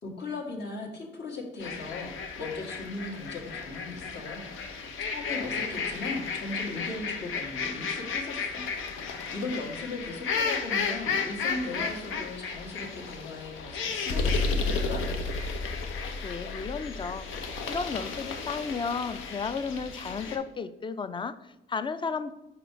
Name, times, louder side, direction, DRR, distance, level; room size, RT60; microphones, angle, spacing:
voice 1, 0.0-15.1, left 2 dB, 60° left, 1 dB, 1.5 m, -38 dB
sound 1, 1.6-20.4, left 4 dB, 80° left, 0.8 m, -33 dB
voice 2, 16.2-22.3, left 5 dB, 25° left, 13 dB, 0.4 m, -34 dB
4.9 x 4.9 x 4.6 m, 0.96 s
cardioid pair, 90°, 20 cm